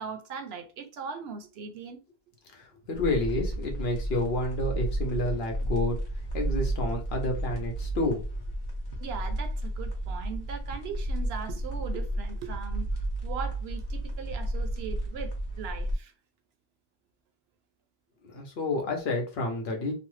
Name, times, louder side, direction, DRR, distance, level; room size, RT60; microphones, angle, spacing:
voice 1, 0.0-2.0 9.0-16.1, right 5 dB, 75° right, 0.8 m, -39 dB
voice 2, 2.5-6.0 6.3-8.2 18.2-19.9, left 2 dB, 70° left, 1.1 m, -30 dB
sound 1, 2.9-15.9, right 1 dB, 45° left, 1.1 m, -32 dB
3.1 x 2.0 x 3.1 m
omnidirectional pair, 1.1 m